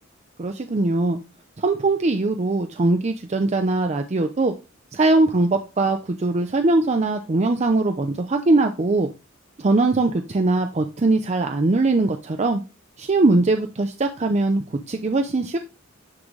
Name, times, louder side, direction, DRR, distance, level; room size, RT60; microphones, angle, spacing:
voice 1, 0.4-1.2 1.6-4.5 4.9-9.1 9.6-12.6 13.0-15.6, right 2 dB, 35° right, 6 dB, 0.5 m, -21 dB
9.6 x 3.8 x 3.2 m, 0.28 s
head